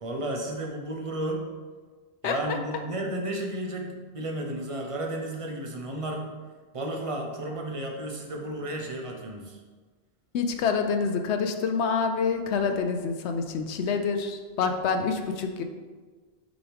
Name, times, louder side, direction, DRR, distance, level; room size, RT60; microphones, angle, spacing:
voice 1, 0.0-1.5 2.2-6.3 6.7-9.6 12.7-12.8, right 1 dB, 35° right, 1 dB, 0.8 m, -33 dB
voice 2, 2.2-2.6 10.3-15.6, left 5 dB, 85° left, 5 dB, 0.9 m, -27 dB
6.2 x 4.7 x 3.4 m, 1.4 s
omnidirectional pair, 1.1 m